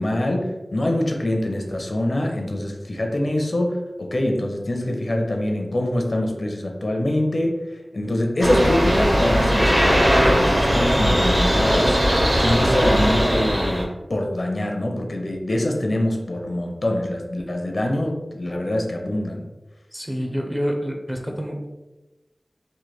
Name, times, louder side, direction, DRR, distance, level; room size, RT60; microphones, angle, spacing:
voice 1, 0.0-12.0 12.4-19.4, left 1 dB, 60° left, 2 dB, 0.5 m, -24 dB
sound 1, 8.4-13.8, equal, 45° right, 0.9 m, -19 dB
voice 2, 19.9-21.7, equal, 15° right, 2 dB, 0.5 m, -27 dB
3.1 x 2.1 x 3.1 m, 1.1 s
wide cardioid pair, 45°, 0 cm